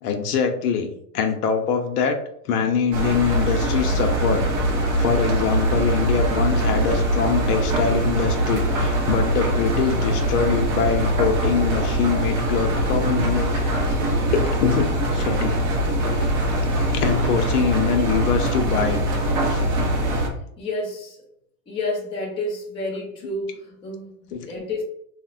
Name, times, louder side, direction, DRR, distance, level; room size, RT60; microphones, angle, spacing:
voice 1, 0.0-0.9 1.1-2.2 2.5-4.5 5.0-15.6 16.1-19.1 19.4-19.6 24.3-24.4, left 6 dB, 70° left, 5 dB, 0.6 m, -24 dB
Engine, 2.9-20.3, right 1 dB, 30° right, 0.5 m, -22 dB
voice 2, 20.6-21.2 21.7-24.8, left 2 dB, 10° left, -2 dB, 0.6 m, -30 dB
3.4 x 2.1 x 2.5 m, 0.70 s
hypercardioid pair, 125°, 48 cm